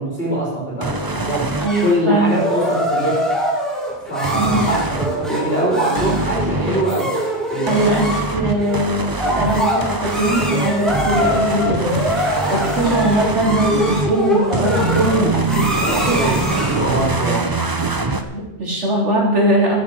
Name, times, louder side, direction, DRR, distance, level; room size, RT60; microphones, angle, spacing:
voice 1, 0.0-1.5 1.8-3.3 4.0-7.1 7.5-8.0 15.8-17.4, right 1 dB, 50° left, -4 dB, 3.9 m, -22 dB
sound 1, 0.8-1.7 4.2-5.1 6.0-6.8 7.7-14.1 14.5-18.2, right 3 dB, 20° right, 0.8 m, -23 dB
voice 2, 1.6-2.4 4.3-4.7 7.7-16.3 16.7-17.0 18.3-19.8, right 1 dB, 70° right, -2 dB, 3.8 m, -20 dB
sound 2, 1.7-16.9, equal, ahead, 2.7 m, -24 dB
13.0 x 9.3 x 6.3 m, 0.99 s
omnidirectional pair, 1.3 m